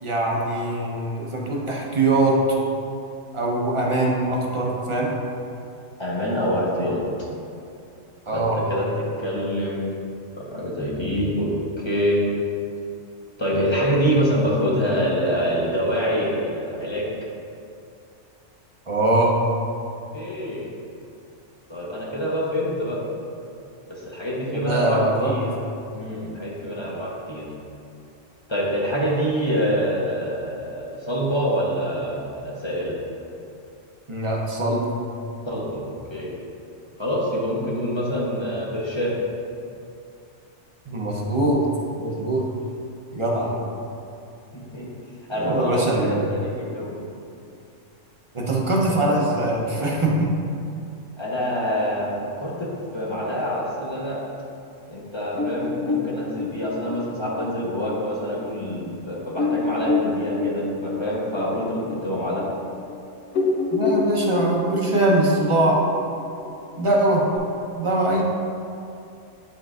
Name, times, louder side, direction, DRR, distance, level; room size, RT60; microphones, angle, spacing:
voice 1, 0.0-2.4 3.3-5.1 8.3-8.6 18.9-19.3 24.5-25.3 34.1-34.9 40.9-41.6 42.0-42.4 43.1-43.5 45.4-46.2 48.3-50.3 63.7-65.8 66.8-67.2 67.7-68.2, right 2 dB, 30° right, -3 dB, 0.8 m, -22 dB
voice 2, 6.0-7.0 8.3-8.8 9.2-10.0 10.4-11.5 11.8-12.2 13.4-17.1 20.1-20.7 21.7-23.0 23.9-25.5 25.9-27.4 28.5-33.0 35.4-36.3 37.0-39.2 42.1-42.2 43.4-43.6 44.7-44.9 45.3-47.0 51.2-54.2 54.9-62.4 68.1-68.2, equal, 25° left, -5 dB, 0.9 m, -26 dB
sound 1, 55.3-58.4 58.9-59.0 59.3-63.0 63.2-67.4, left 3 dB, 80° left, 1.2 m, -27 dB
11.0 x 3.8 x 2.5 m, 2.6 s
omnidirectional pair, 1.4 m